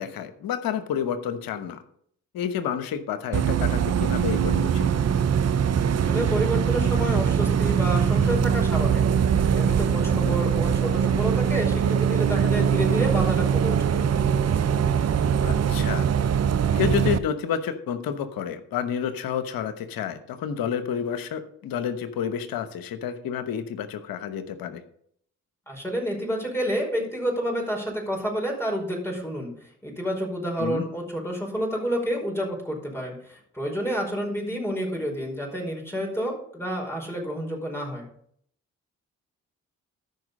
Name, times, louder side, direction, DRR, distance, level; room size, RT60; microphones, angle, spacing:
voice 1, 0.0-1.8 2.3-4.9 10.1-10.4 15.4-16.1 16.7-24.8 30.6-30.9, left 8 dB, 70° left, 11 dB, 1.1 m, -30 dB
Bus, 3.3-17.2, right 7 dB, 45° right, 0.7 m, -22 dB
voice 2, 6.1-14.0 25.7-29.5 29.8-38.1, equal, 5° left, -1 dB, 5.0 m, -29 dB
13.5 x 5.5 x 5.3 m, 0.65 s
hypercardioid pair, 40°, 36 cm